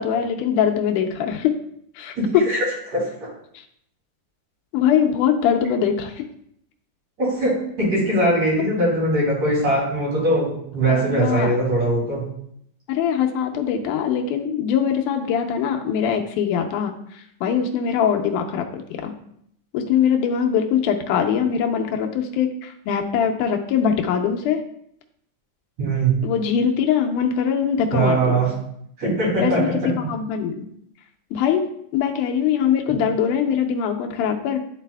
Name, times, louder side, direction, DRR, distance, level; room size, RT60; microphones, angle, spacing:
voice 1, 0.0-1.5 2.0-2.2 3.5-3.6 4.7-6.2 8.6-8.7 10.9-11.5 12.9-19.1 19.7-24.6 26.2-28.5 29.4-30.6 31.3-31.7 31.9-34.7, left 8 dB, 85° left, 3 dB, 2.2 m, -22 dB
voice 2, 2.2-2.7 2.9-3.0 7.2-7.5 7.8-12.2 25.8-26.2 27.9-28.5 29.0-29.6, right 2 dB, 60° right, -6 dB, 3.7 m, -21 dB
11.5 x 4.1 x 2.2 m, 0.71 s
omnidirectional pair, 3.6 m